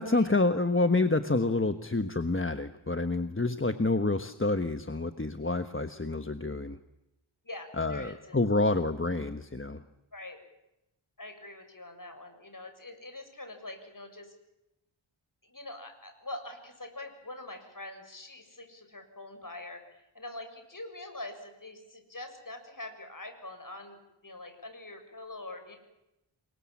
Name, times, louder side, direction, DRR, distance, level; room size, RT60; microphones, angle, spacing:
voice 1, 0.0-6.8 7.7-9.8, left 2 dB, 25° left, 9 dB, 1.3 m, -28 dB
voice 2, 7.5-8.4 10.1-10.4 11.2-14.4 15.4-25.8, left 2 dB, 40° left, 6 dB, 7.1 m, -44 dB
29.5 x 24.0 x 7.4 m, 0.89 s
wide cardioid pair, 65°, 49 cm